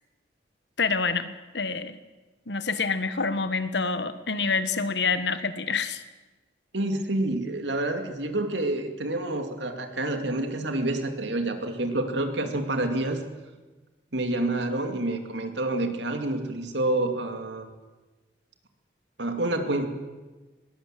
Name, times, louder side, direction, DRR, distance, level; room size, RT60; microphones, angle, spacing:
voice 1, 0.8-2.0 2.5-6.0, left 4 dB, 65° left, 12 dB, 1.3 m, -27 dB
voice 2, 6.7-13.2 14.1-17.7 19.2-19.9, right 2 dB, 70° right, 6 dB, 2.5 m, -28 dB
21.0 x 17.5 x 7.6 m, 1.2 s
head